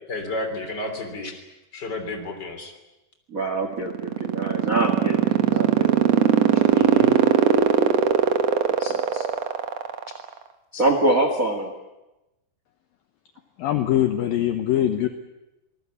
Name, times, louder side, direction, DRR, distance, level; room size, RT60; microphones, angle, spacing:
voice 1, 0.1-1.4 1.7-2.7 6.7-7.1, left 2 dB, 25° left, 6 dB, 3.3 m, -31 dB
voice 2, 3.3-6.0 7.8-8.1 8.8-9.3 10.7-11.7, right 2 dB, 55° right, 6 dB, 0.9 m, -25 dB
sound 1, 3.7-10.3, right 10 dB, 80° right, 1.4 m, -18 dB
voice 3, 13.6-15.1, left 12 dB, 70° left, 8 dB, 2.2 m, -22 dB
25.5 x 19.5 x 8.5 m, 0.99 s
omnidirectional pair, 5.1 m